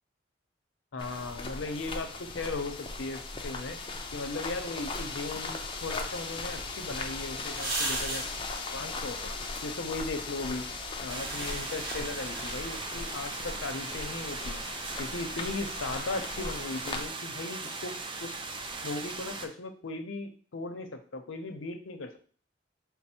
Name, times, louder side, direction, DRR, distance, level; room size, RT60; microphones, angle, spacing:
voice 1, 0.9-3.8 4.1-8.2 8.7-9.3 9.6-10.7 11.0-14.6 15.0-18.0 18.2-18.4 18.8-22.2, left 3 dB, 85° left, 7 dB, 0.6 m, -37 dB
sound 1, 1.0-17.1, left 3 dB, 25° left, 0.5 m, -38 dB
sound 2, 6.5-12.7, right 2 dB, 55° right, 1.1 m, -39 dB
sound 3, 11.1-19.5, right 3 dB, 25° right, 0.4 m, -39 dB
5.1 x 2.0 x 4.3 m, 0.43 s
head